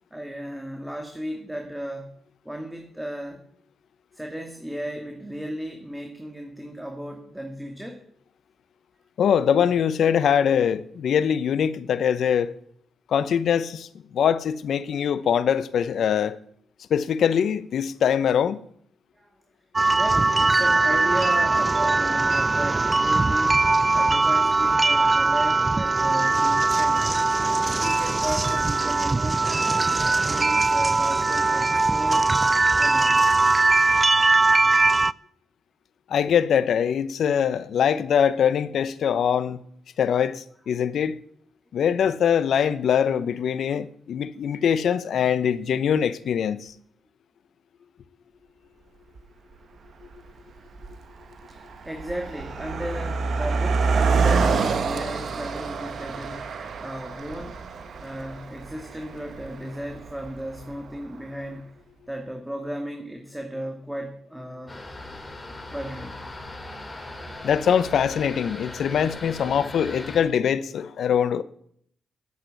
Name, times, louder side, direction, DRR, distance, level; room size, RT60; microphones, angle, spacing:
voice 1, 0.1-2.1 2.4-3.4 4.1-8.0 19.2-19.3 19.9-23.6 23.9-27.0 27.6-29.7 30.0-32.3 32.8-33.2 51.5-56.5 56.8-57.7 58.0-61.6 62.1-64.8 65.7-66.2, equal, 10° right, 2.2 m, -35 dB
voice 2, 9.2-12.5 13.1-13.9 14.1-16.4 16.9-18.6 36.1-39.6 40.0-41.1 41.7-46.7 67.4-71.4, left 8 dB, 70° left, 0.8 m, -23 dB
sound 1, 19.8-35.1, right 3 dB, 30° right, 0.4 m, -21 dB
Car passing by, 49.2-49.3 50.0-50.3 50.6-61.0, right 4 dB, 65° right, 1.5 m, -27 dB
sound 2, 64.7-70.2, left 1 dB, 20° left, 4.5 m, -39 dB
11.0 x 8.3 x 8.1 m
supercardioid pair, 50°, 0 cm